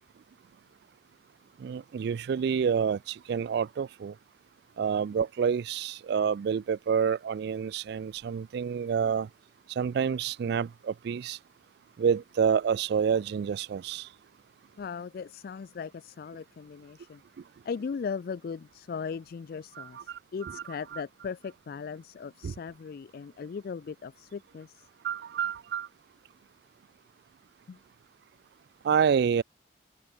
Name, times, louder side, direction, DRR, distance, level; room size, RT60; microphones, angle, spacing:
voice 1, 1.6-4.1 4.8-9.3 9.7-11.4 12.0-14.1 19.8-20.6 20.9-21.0 22.4-22.5 25.0-25.9 28.8-29.4, right 7 dB, 60° right, 0.3 m, -28 dB
voice 2, 14.8-17.2 17.6-24.9 27.7-27.8, left 6 dB, 55° left, 0.3 m, -38 dB
head